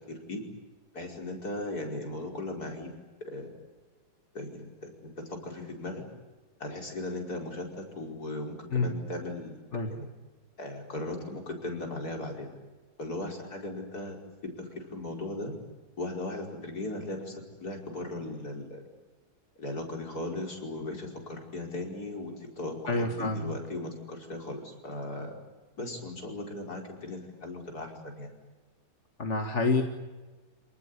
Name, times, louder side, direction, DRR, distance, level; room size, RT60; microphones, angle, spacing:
voice 1, 0.1-0.4 0.9-2.9 3.3-3.5 4.3-6.0 6.6-9.6 9.9-10.1 10.6-12.5 13.0-14.2 14.6-15.5 16.0-18.8 19.6-25.3 25.8-28.3, left 2 dB, 60° left, 1 dB, 5.7 m, -37 dB
voice 2, 22.9-23.5 29.2-29.8, left 3 dB, 40° left, 4 dB, 2.1 m, -27 dB
29.0 x 19.5 x 9.9 m, 1.3 s
omnidirectional pair, 1.9 m